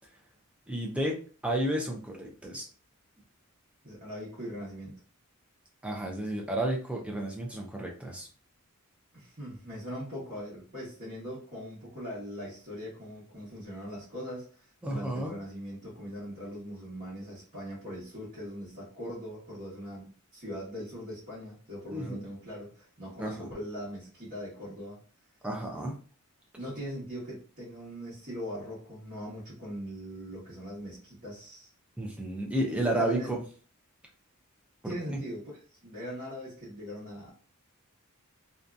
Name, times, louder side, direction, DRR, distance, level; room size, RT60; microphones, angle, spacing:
voice 1, 0.7-1.2 1.4-2.6 5.8-8.3 14.8-15.3 21.9-22.2 23.2-23.5 25.4-26.0 32.0-33.4 35.1-35.2, right 1 dB, 5° right, 1 dB, 0.5 m, -31 dB
voice 2, 3.8-4.9 9.1-14.5 14.9-25.0 26.6-31.7 32.9-33.3 34.8-35.4 35.7-37.3, equal, 45° right, -10 dB, 1.2 m, -40 dB
2.7 x 2.2 x 2.5 m, 0.40 s
head